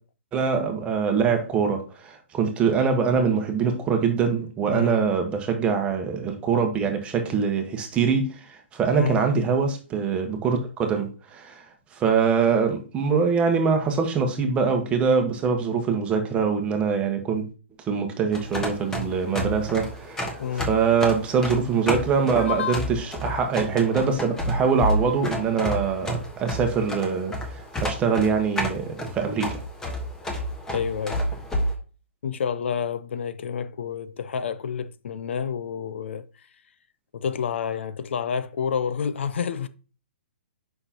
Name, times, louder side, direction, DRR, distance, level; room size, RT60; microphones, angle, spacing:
voice 1, 0.3-11.6 11.9-17.5 17.9-29.6, right 6 dB, 15° right, 1.2 m, -24 dB
voice 2, 4.7-5.0 9.0-9.2 20.4-20.7 22.4-22.8 30.7-31.3 32.2-36.5 37.1-39.7, left 7 dB, 70° left, 0.6 m, -29 dB
sound 1, 18.3-31.7, equal, 10° left, 1.2 m, -30 dB
7.8 x 5.7 x 2.9 m
hypercardioid pair, 150°, 7 cm